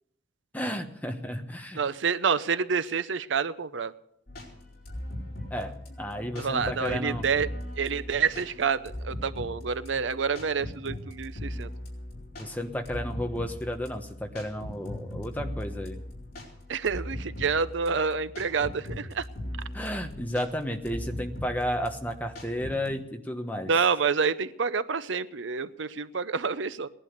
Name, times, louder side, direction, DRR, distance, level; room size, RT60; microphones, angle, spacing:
voice 1, 0.5-1.8 5.5-7.2 12.4-16.0 19.7-23.7, equal, 10° left, 5 dB, 1.1 m, -32 dB
voice 2, 1.7-3.9 6.4-7.5 7.8-11.7 16.7-19.2 23.7-26.9, right 5 dB, 75° right, 14 dB, 0.6 m, -28 dB
sound 1, 4.3-22.9, left 1 dB, 50° left, 4.7 m, -39 dB
18.0 x 11.0 x 6.7 m, 0.75 s
head